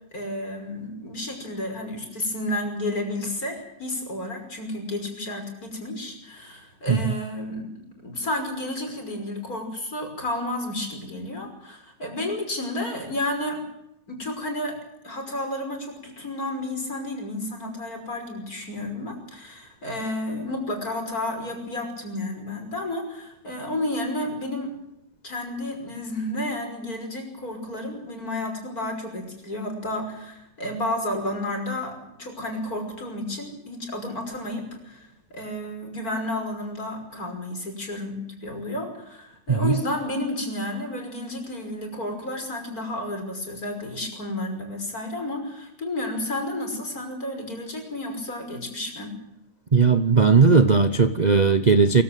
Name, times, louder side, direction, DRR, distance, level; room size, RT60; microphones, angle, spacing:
voice 1, 0.1-7.7 8.0-13.6 14.1-14.8 15.0-24.7 25.2-49.2, left 1 dB, 50° left, 4 dB, 6.2 m, -31 dB
voice 2, 49.7-52.0, right 5 dB, 35° right, 11 dB, 0.7 m, -17 dB
23.5 x 15.5 x 9.2 m, 0.81 s
omnidirectional pair, 1.9 m